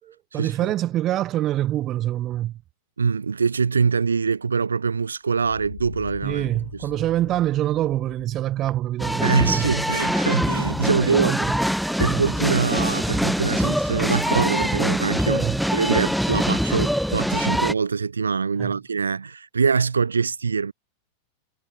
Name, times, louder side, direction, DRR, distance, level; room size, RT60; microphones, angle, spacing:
voice 1, 0.0-2.6 6.2-9.7 11.0-11.6 12.0-12.2 15.3-15.6 18.6-18.7, right 13 dB, 35° right, 1.8 m, -25 dB
voice 2, 3.0-6.5 9.2-11.4 12.0-15.4 15.7-20.7, right 5 dB, 75° right, 1.3 m, -23 dB
sound 1, 5.4-8.7 9.1-9.9 10.2-10.3 11.3-11.8, left 10 dB, 60° left, 3.6 m, -42 dB
sound 2, 9.0-17.7, equal, ahead, 1.1 m, -24 dB
figure-of-eight pair, 90°, 0 cm